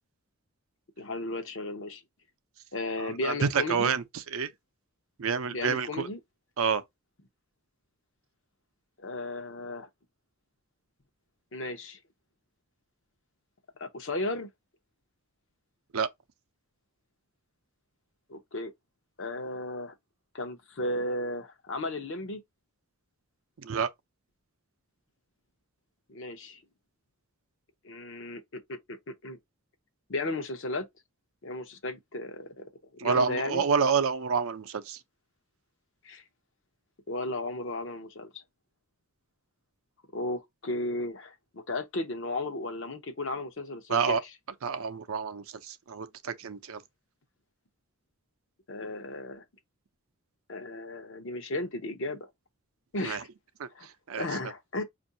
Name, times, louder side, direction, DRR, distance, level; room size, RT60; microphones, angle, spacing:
voice 1, 1.0-2.0 2.7-3.9 5.5-6.2 9.0-9.9 11.5-12.0 13.8-14.5 18.3-18.7 19.2-19.9 20.3-22.4 26.1-26.6 27.8-29.4 30.1-30.9 31.4-33.6 36.0-36.2 37.1-38.4 40.1-44.3 48.7-49.4 50.5-52.3 52.9-53.3 53.7-53.9 54.2-54.8, left 2 dB, 55° left, 0.7 m, -35 dB
voice 2, 3.2-4.0 4.3-4.5 5.2-6.1 6.6-6.8 15.9-16.1 23.6-23.9 33.0-35.0 43.9-44.2 44.6-46.8 53.0-53.2 53.6-53.7 54.1-54.3, right 6 dB, 70° right, 0.5 m, -28 dB
5.3 x 2.6 x 2.6 m
head